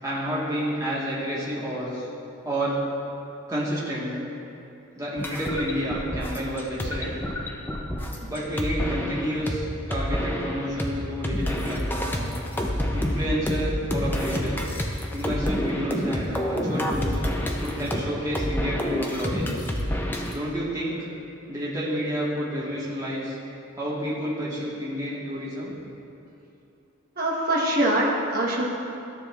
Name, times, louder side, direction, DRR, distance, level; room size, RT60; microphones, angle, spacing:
voice 1, 0.0-2.1 2.4-2.8 3.5-4.2 5.0-7.2 8.2-12.4 12.9-14.7 15.1-17.2 17.6-19.7 20.3-21.0 21.5-23.4 23.8-25.7, equal, 15° right, -7 dB, 1.4 m, -30 dB
sound 1, 5.2-9.6 9.9-10.9 11.2-20.4, left 1 dB, 10° left, 0.5 m, -28 dB
voice 2, 27.2-28.7, right 1 dB, 45° right, -4 dB, 1.1 m, -23 dB
13.0 x 6.7 x 2.4 m, 2.7 s
head